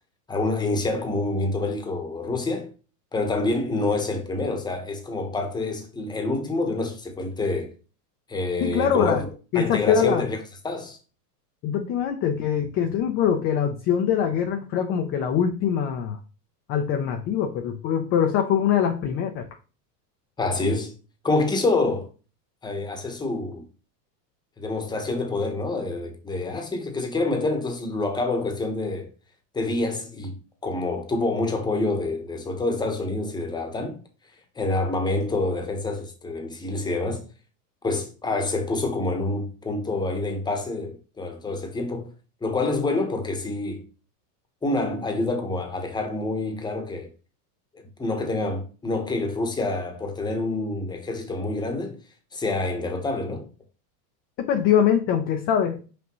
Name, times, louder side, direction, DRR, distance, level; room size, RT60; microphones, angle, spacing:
voice 1, 0.3-2.7 3.1-7.7 8.3-9.3 9.5-10.4 10.6-11.0 20.4-20.9 21.2-22.1 22.6-23.6 24.6-29.1 29.5-34.0 34.6-37.3 37.8-42.1 42.4-43.8 44.6-47.1 48.0-52.0 52.3-53.5, left 2 dB, 10° left, 1.0 m, -27 dB
voice 2, 8.6-9.2 9.5-10.3 11.6-16.2 16.7-19.4 54.5-55.8, left 8 dB, 30° left, 0.5 m, -23 dB
6.0 x 5.2 x 3.0 m
supercardioid pair, 150°, 49 cm